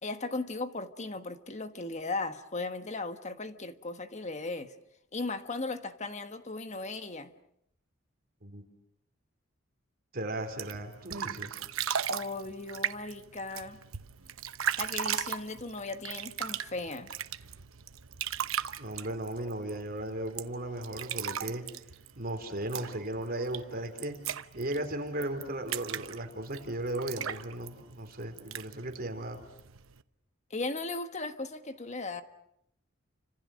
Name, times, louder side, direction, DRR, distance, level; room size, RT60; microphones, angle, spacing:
voice 1, 0.0-4.7 5.1-7.3 12.1-13.8 14.8-17.1 30.5-32.2, left 3 dB, 35° left, 1.5 m, -37 dB
voice 2, 10.1-11.6 18.8-21.6 22.2-24.1 24.5-29.4, right 1 dB, 45° right, 3.8 m, -36 dB
sound 1, 10.4-30.0, right 8 dB, 85° right, 1.0 m, -38 dB
29.5 x 26.0 x 6.4 m
head